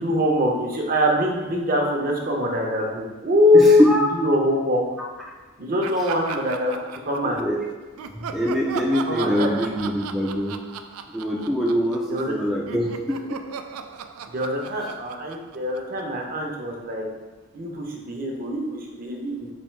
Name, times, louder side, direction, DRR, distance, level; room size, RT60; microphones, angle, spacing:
voice 1, 0.0-4.8 5.6-7.4 9.1-9.5 12.1-12.3 14.3-17.1 17.5-19.3, left 1 dB, 40° right, 0 dB, 0.7 m, -23 dB
voice 2, 3.5-4.1 7.2-7.6 8.1-10.6 11.1-13.4, equal, ahead, -4 dB, 0.4 m, -23 dB
Laughter, 5.8-7.6 8.0-12.4 12.7-16.2, right 6 dB, 85° right, 0.3 m, -37 dB
4.2 x 2.7 x 4.4 m, 1.3 s
head